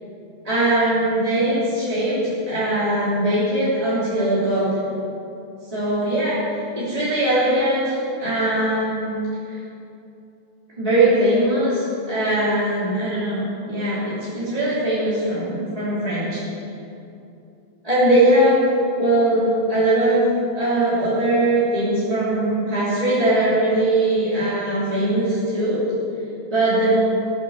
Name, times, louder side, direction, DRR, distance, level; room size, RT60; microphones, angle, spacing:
voice 1, 0.4-4.9 5.7-6.3 6.7-9.2 9.5-9.6 10.8-16.4 17.8-18.6 19.0-20.2 20.5-25.8 26.5-27.0, right 1 dB, 10° right, -11 dB, 2.5 m, -20 dB
16.5 x 10.5 x 6.7 m, 2.7 s
omnidirectional pair, 5.5 m